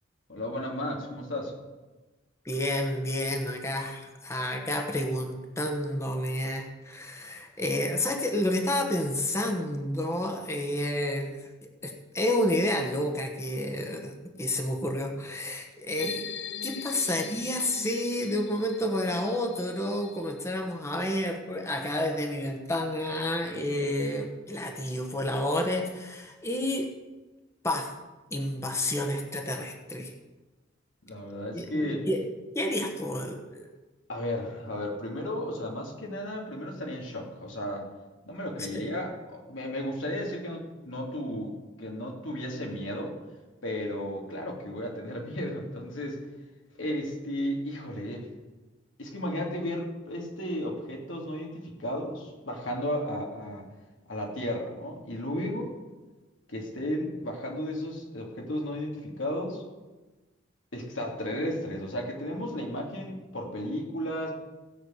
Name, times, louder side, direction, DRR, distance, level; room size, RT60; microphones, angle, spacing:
voice 1, 0.3-1.5 31.0-32.0 34.1-37.9 38.2-43.1 43.6-46.2 46.8-48.3 49.0-53.7 54.1-55.7 56.5-59.6 60.7-64.3, left 1 dB, 85° left, 0 dB, 2.8 m, -34 dB
voice 2, 2.4-11.5 11.8-16.2 16.6-26.9 27.6-27.9 28.3-30.1 31.5-32.3 32.5-33.7 38.7-38.9, left 1 dB, 15° left, 3 dB, 1.2 m, -30 dB
sound 1, 16.0-20.7, left 6 dB, 65° left, 0.6 m, -41 dB
16.0 x 6.2 x 8.1 m, 1.2 s
head